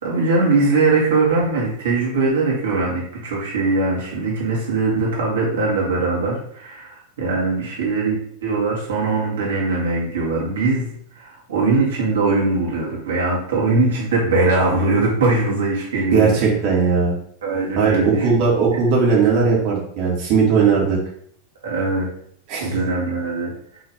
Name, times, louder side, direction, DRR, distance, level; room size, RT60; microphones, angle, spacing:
voice 1, 0.0-16.4 17.4-18.4 20.6-20.7 21.6-22.1 22.6-23.5, right 3 dB, 65° right, -4 dB, 2.5 m, -21 dB
voice 2, 16.1-17.1 17.8-21.0 22.5-22.7, right 5 dB, 45° right, -4 dB, 2.5 m, -18 dB
7.7 x 4.0 x 3.7 m, 0.65 s
figure-of-eight pair, 90°, 0 cm